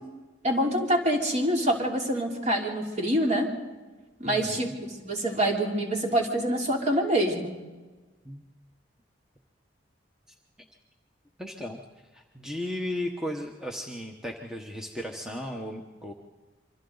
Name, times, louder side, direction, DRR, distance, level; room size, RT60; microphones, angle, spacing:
voice 1, 0.4-3.5 4.2-7.5, right 1 dB, 35° right, 0 dB, 3.1 m, -26 dB
voice 2, 4.2-4.7 8.2-8.4 11.4-11.8 12.1-16.1, left 1 dB, 5° right, 1 dB, 1.1 m, -35 dB
27.0 x 24.5 x 4.0 m, 1.3 s
head